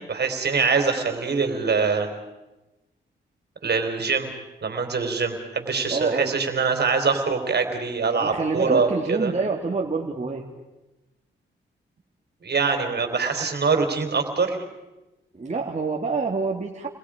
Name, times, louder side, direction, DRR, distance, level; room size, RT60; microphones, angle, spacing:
voice 1, 0.1-2.1 3.6-4.3 4.6-9.3 12.4-14.6, right 5 dB, 55° right, 6 dB, 3.9 m, -24 dB
voice 2, 5.9-6.3 8.2-10.4 12.9-13.2 15.3-16.9, right 4 dB, 35° right, 0 dB, 2.3 m, -27 dB
29.5 x 21.5 x 5.1 m, 1.0 s
cardioid pair, 60°, 20 cm